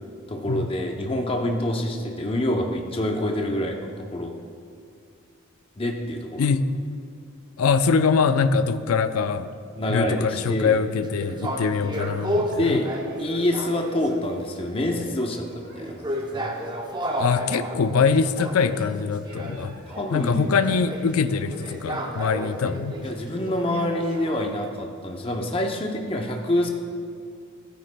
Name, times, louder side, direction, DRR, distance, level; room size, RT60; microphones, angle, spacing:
voice 1, 0.3-4.3 5.8-6.5 9.8-10.8 12.6-12.9 13.2-16.5 19.9-20.5 23.0-26.7, left 1 dB, 25° left, 2 dB, 0.6 m, -26 dB
voice 2, 7.6-9.5 9.9-12.8 17.2-19.7 20.1-23.0, left 5 dB, 90° left, 11 dB, 0.4 m, -23 dB
sound 1, 11.0-14.4 14.7-24.7, equal, 20° right, 0.7 m, -33 dB
sound 2, 12.8-14.2 14.4-14.6 14.9-18.9 19.3-20.1 20.3-22.5 22.9-24.7, right 1 dB, 45° right, 1.9 m, -49 dB
14.0 x 9.3 x 2.2 m, 2.3 s
head